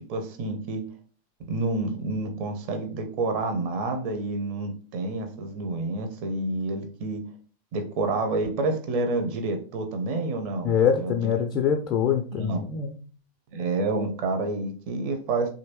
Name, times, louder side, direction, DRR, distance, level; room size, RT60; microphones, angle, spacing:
voice 1, 0.1-0.8 1.5-7.2 7.7-11.3 12.3-12.6 13.5-15.5, right 2 dB, 45° right, 6 dB, 0.6 m, -29 dB
voice 2, 10.6-13.0, left 8 dB, 30° left, 3 dB, 0.4 m, -24 dB
3.0 x 2.6 x 2.9 m, 0.40 s
figure-of-eight pair, 90°, 0 cm